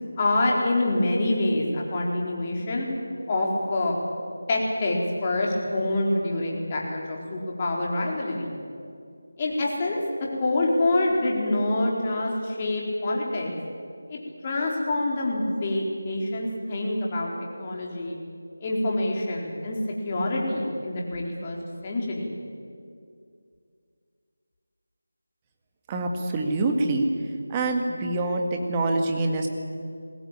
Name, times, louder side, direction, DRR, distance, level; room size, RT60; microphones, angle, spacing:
voice 1, 0.2-2.9 3.3-4.0 4.5-8.5 9.4-10.0 10.4-13.5 14.1-17.3 17.6-18.2 18.6-19.8 20.0-21.6 21.8-22.3, left 2 dB, 25° left, -2 dB, 4.2 m, -26 dB
voice 2, 25.9-27.1 27.5-29.5, right 2 dB, 15° right, 3 dB, 1.9 m, -25 dB
21.5 x 18.0 x 9.0 m, 2.3 s
figure-of-eight pair, 165°, 0 cm